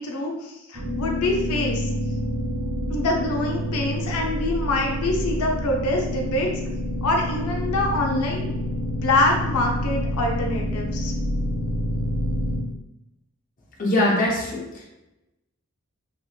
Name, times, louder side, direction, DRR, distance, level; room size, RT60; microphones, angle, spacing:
voice 1, 0.0-1.9 2.9-6.5 7.0-8.6 8.9-11.1, left 2 dB, 90° left, 1 dB, 0.5 m, -25 dB
sound 1, 0.7-12.6, equal, 70° right, 0.8 m, -27 dB
voice 2, 13.8-14.9, left 1 dB, 35° left, -3 dB, 0.6 m, -22 dB
2.9 x 2.8 x 2.3 m, 0.93 s
head